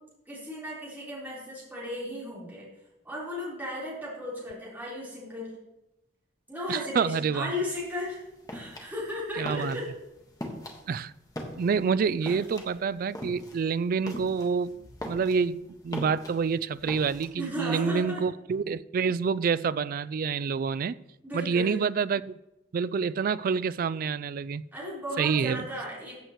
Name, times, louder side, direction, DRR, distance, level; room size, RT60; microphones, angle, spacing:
voice 1, 0.3-2.7 3.0-5.5 6.5-8.2 8.5-9.9 12.2-12.4 17.4-18.2 21.2-21.8 24.7-26.2, left 1 dB, 10° right, -7 dB, 4.0 m, -35 dB
voice 2, 6.7-7.5 9.4-9.8 10.9-11.1 11.6-21.0 21.3-22.3 22.7-24.6 25.2-25.7, right 5 dB, 50° right, 17 dB, 0.3 m, -27 dB
sound 1, 7.7-17.3, left 1 dB, 20° left, 1.4 m, -41 dB
14.5 x 7.9 x 3.1 m, 0.91 s
head